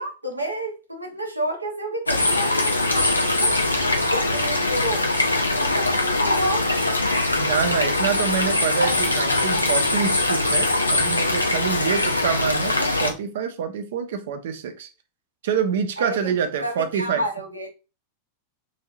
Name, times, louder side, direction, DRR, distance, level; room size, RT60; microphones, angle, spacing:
voice 1, 0.0-3.6 4.0-5.2 5.5-6.7 16.0-16.4 16.6-17.7, right 1 dB, 85° right, 0.8 m, -30 dB
sound 1, 2.1-13.1, left 2 dB, 85° left, 0.5 m, -22 dB
voice 2, 7.4-14.9 15.4-17.2, right 7 dB, 55° right, 0.5 m, -26 dB
3.2 x 2.6 x 2.3 m
figure-of-eight pair, 90°, 0 cm